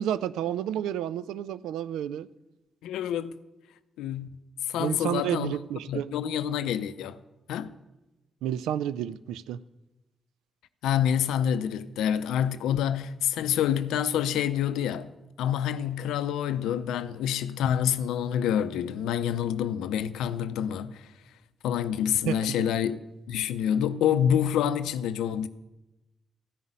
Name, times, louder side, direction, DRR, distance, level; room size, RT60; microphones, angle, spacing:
voice 1, 0.0-2.3 4.8-6.1 8.4-9.6 22.3-22.7, right 10 dB, 80° right, 0.4 m, -30 dB
voice 2, 2.8-3.4 4.0-4.4 4.7-5.6 5.9-7.2 7.5-7.7 10.8-15.1 15.4-21.1 21.6-23.0 23.3-25.5, left 9 dB, 80° left, 0.5 m, -27 dB
14.0 x 5.5 x 9.5 m
hypercardioid pair, 40°, 0 cm